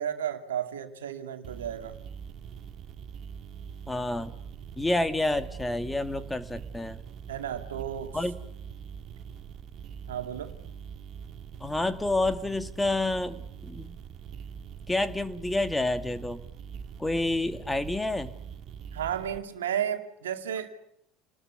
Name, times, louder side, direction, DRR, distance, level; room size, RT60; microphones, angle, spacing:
voice 1, 0.0-2.0 7.3-8.2 10.1-10.5 18.9-20.7, right 9 dB, 80° right, 6 dB, 2.4 m, -33 dB
sound 1, 1.4-19.4, right 7 dB, 50° right, 2.0 m, -43 dB
voice 2, 3.9-4.3 4.8-7.0 8.1-8.4 11.6-14.0 14.9-16.4 17.0-18.3, left 2 dB, 10° left, 10 dB, 2.2 m, -29 dB
30.0 x 20.0 x 8.3 m, 0.76 s
hypercardioid pair, 70°, 0 cm